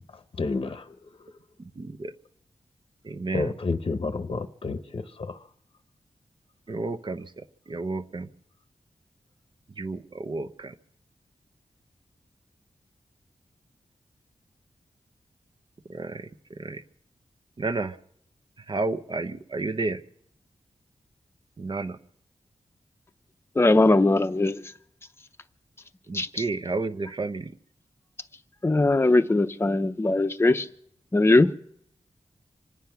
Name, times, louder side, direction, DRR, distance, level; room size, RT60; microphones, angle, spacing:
voice 1, 0.4-1.0 3.3-5.4, left 3 dB, 50° left, 0.8 m, -30 dB
voice 2, 1.6-2.1 3.0-3.6 6.7-8.3 9.8-10.7 15.9-16.8 17.6-18.0 18.7-20.0 21.6-22.0 26.1-27.5, right 3 dB, 40° right, 0.8 m, -31 dB
voice 3, 23.5-24.7 26.1-26.4 28.6-30.7 31.1-31.5, left 2 dB, 20° left, 0.7 m, -20 dB
25.5 x 9.7 x 5.8 m
wide cardioid pair, 95°, 12 cm